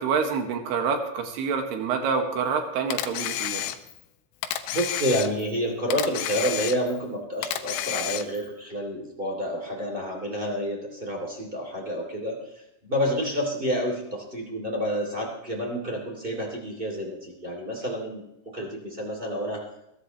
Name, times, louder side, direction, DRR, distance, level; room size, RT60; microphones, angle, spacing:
voice 1, 0.0-3.6, right 5 dB, 65° right, 4 dB, 3.5 m, -27 dB
Camera, 2.9-4.1 4.4-5.6 5.9-7.1 7.4-8.5, left 12 dB, 85° left, 3.5 m, -30 dB
voice 2, 4.7-12.4 12.8-19.6, equal, 15° right, 0 dB, 1.9 m, -29 dB
21.5 x 14.0 x 3.2 m, 0.85 s
omnidirectional pair, 5.6 m